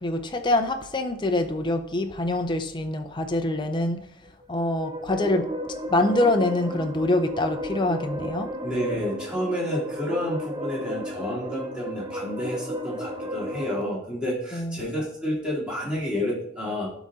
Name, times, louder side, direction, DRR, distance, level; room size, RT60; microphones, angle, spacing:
voice 1, 0.0-4.0 4.5-5.5 5.9-8.5 14.5-14.8, left 2 dB, 25° left, 5 dB, 0.6 m, -25 dB
sound 1, 4.4-13.8, equal, 25° right, 0.7 m, -34 dB
voice 2, 8.6-16.9, equal, 5° right, -6 dB, 2.8 m, -30 dB
11.5 x 4.0 x 3.7 m, 0.70 s
head